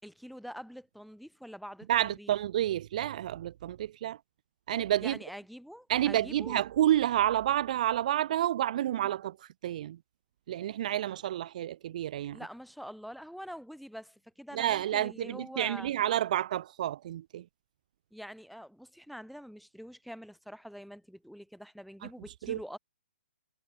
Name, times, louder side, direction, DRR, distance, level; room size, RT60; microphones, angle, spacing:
voice 1, 0.0-2.3 5.0-6.6 12.3-15.9 18.1-22.8, equal, ahead, 7.2 m, -45 dB
voice 2, 1.9-4.2 4.7-5.2 5.9-10.0 10.5-12.4 14.5-17.4 22.0-22.1 22.5-22.6, right 12 dB, 40° right, 0.5 m, -29 dB
hypercardioid pair, 165°, 6 cm